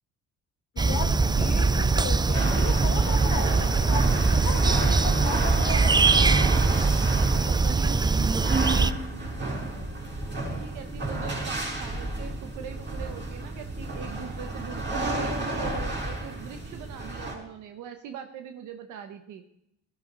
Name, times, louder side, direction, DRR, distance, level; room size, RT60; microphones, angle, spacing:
voice 1, 0.8-1.1 1.4-6.0, left 6 dB, 85° left, 2 dB, 1.8 m, -36 dB
sound 1, 0.8-8.9, right 4 dB, 15° right, 0.4 m, -22 dB
Bass guitar, 0.9-7.1, left 3 dB, 35° left, 1.9 m, -44 dB
sound 2, 2.3-17.3, right 2 dB, 35° right, 5.3 m, -31 dB
voice 2, 7.3-8.0 10.6-15.1 15.5-19.4, right 8 dB, 85° right, 7 dB, 1.1 m, -41 dB
16.0 x 12.5 x 3.9 m, 0.78 s
cardioid pair, 90°, 30 cm